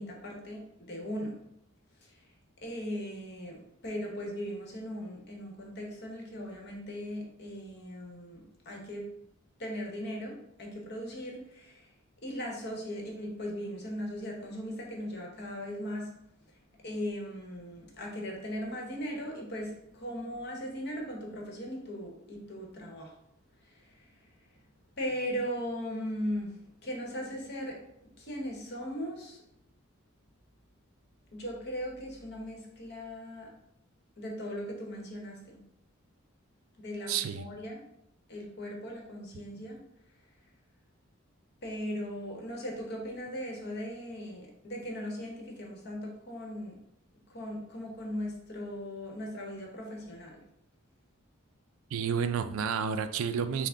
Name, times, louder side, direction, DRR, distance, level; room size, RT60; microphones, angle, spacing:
voice 1, 0.0-1.4 2.0-2.2 2.6-9.1 9.6-11.9 12.2-16.1 16.7-23.2 23.6-24.3 25.0-26.6 26.8-27.8 28.2-29.4 31.3-33.5 34.2-35.6 36.8-37.8 38.3-39.8 41.6-46.8 47.3-50.4, equal, 50° left, 0 dB, 1.0 m, -38 dB
voice 2, 37.1-37.4 51.9-53.7, right 7 dB, 75° right, 10 dB, 0.3 m, -30 dB
5.8 x 2.1 x 3.6 m, 0.77 s
head